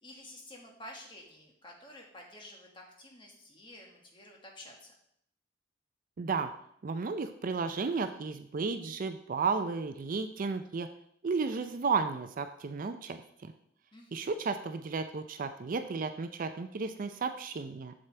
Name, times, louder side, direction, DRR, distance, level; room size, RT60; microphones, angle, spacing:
voice 1, 0.0-4.9 13.9-14.3, left 1 dB, 25° left, 0 dB, 1.6 m, -50 dB
voice 2, 6.2-6.5 6.8-10.9 11.2-13.5 14.1-17.9, right 4 dB, 40° right, 9 dB, 0.4 m, -33 dB
8.6 x 7.3 x 3.3 m, 0.70 s
head